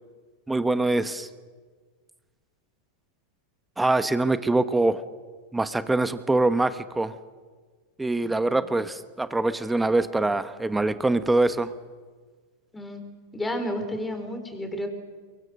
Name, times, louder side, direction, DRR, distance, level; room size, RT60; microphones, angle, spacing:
voice 1, 0.5-1.3 3.8-5.0 5.5-7.1 8.0-11.7, right 2 dB, 10° right, 12 dB, 1.0 m, -24 dB
voice 2, 12.7-13.0 13.3-14.9, left 1 dB, 10° left, 7 dB, 4.4 m, -32 dB
24.0 x 23.5 x 6.5 m, 1.5 s
hypercardioid pair, 100°, 0 cm